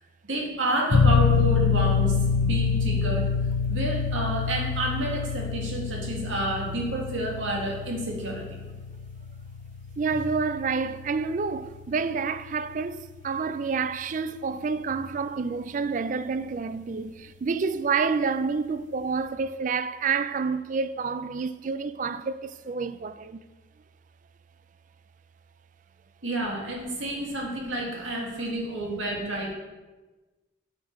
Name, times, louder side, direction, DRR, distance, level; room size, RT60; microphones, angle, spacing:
voice 1, 0.2-3.3 3.7-8.6 26.2-29.6, right 1 dB, 80° right, 2.1 m, -30 dB
sound 1, 0.9-15.3, left 5 dB, 65° left, 0.7 m, -27 dB
voice 2, 10.0-23.4, right 5 dB, 40° right, 0.3 m, -28 dB
8.3 x 5.5 x 4.7 m
head